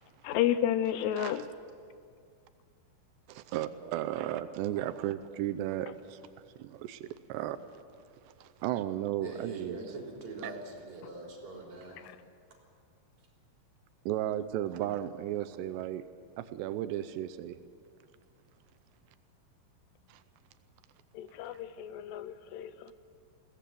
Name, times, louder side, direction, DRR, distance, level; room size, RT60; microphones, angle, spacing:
voice 1, 0.2-1.5 21.1-22.9, left 11 dB, 80° left, 13 dB, 2.7 m, -31 dB
voice 2, 1.2-1.5 3.3-6.2 6.6-7.6 8.4-9.8 10.4-10.5 14.1-16.0 16.4-17.6 20.1-20.2, right 12 dB, 85° right, 10 dB, 2.8 m, -34 dB
voice 3, 9.2-12.1, right 3 dB, 40° right, -1 dB, 4.9 m, -43 dB
21.5 x 18.0 x 7.6 m, 2.2 s
omnidirectional pair, 5.0 m